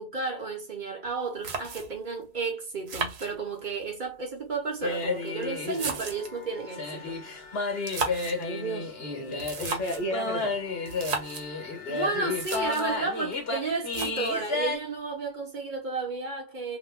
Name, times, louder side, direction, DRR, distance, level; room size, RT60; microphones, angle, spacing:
voice 1, 0.0-7.2 11.9-16.8, right 4 dB, 50° right, 1.0 m, -32 dB
sound 1, 1.1-1.2 1.4-2.1 2.9-3.8 4.7-6.4 7.7-8.5 9.3-10.1 10.9-11.5 12.0-12.1 12.3-13.0 13.9-14.5, right 4 dB, 90° right, 1.0 m, -35 dB
sound 2, 4.8-14.8, left 3 dB, 70° left, 1.3 m, -32 dB
voice 2, 8.4-10.6, right 1 dB, 50° left, 0.9 m, -34 dB
2.9 x 2.2 x 3.2 m
omnidirectional pair, 1.1 m